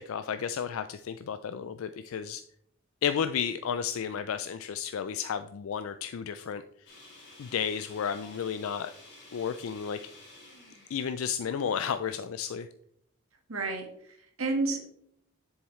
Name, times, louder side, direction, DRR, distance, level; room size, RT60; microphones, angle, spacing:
voice 1, 0.0-2.4 3.0-6.6 7.4-8.9 9.3-10.0 10.9-12.7, left 7 dB, 75° left, 10 dB, 0.4 m, -32 dB
sound 1, 6.9-12.0, left 2 dB, 55° left, 2.3 m, -52 dB
voice 2, 13.5-14.9, right 3 dB, 80° right, 3 dB, 1.7 m, -31 dB
7.2 x 7.1 x 3.2 m, 0.69 s
head